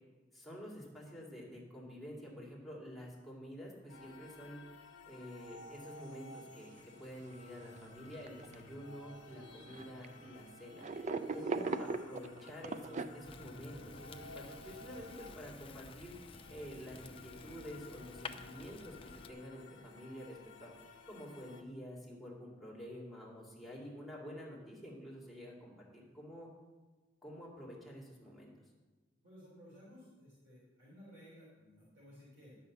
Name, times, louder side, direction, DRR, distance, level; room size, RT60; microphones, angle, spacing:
voice 1, 0.3-4.6 5.0-6.7 7.0-10.9 11.3-20.7 21.1-26.5 27.2-28.5, equal, ahead, -5 dB, 2.3 m, -49 dB
sound 1, 3.9-21.6, left 2 dB, 85° left, 1.2 m, -55 dB
sound 2, 6.8-6.9 7.2-7.3 8.1-8.8 9.7-10.1 10.8-13.1, right 3 dB, 40° right, 0.4 m, -38 dB
voice 2, 11.5-12.0 29.2-32.6, equal, 75° right, -7 dB, 3.7 m, -57 dB
Fire, 13.2-19.3, left 4 dB, 30° left, 0.5 m, -52 dB
10.5 x 5.6 x 7.1 m, 1.3 s
head